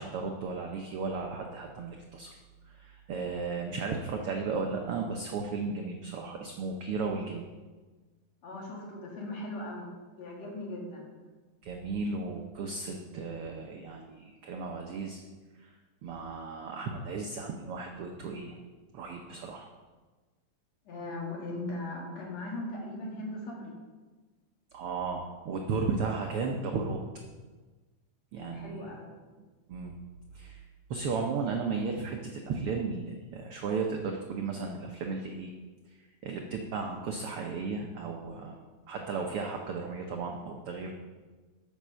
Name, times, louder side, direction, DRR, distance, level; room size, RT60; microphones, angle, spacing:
voice 1, 0.0-2.4 2.7-7.4 11.6-15.2 15.6-15.7 16.0-18.6 18.9-19.7 24.7-27.0 28.3-29.0 29.7-29.9 30.3-30.6 30.9-35.5 36.2-38.6 38.9-40.9, right 4 dB, 85° right, 2 dB, 1.2 m, -35 dB
voice 2, 8.4-9.9 10.2-11.1 20.9-23.7 28.4-29.1, left 2 dB, 60° left, -2 dB, 3.1 m, -39 dB
8.9 x 6.6 x 6.3 m, 1.3 s
omnidirectional pair, 3.6 m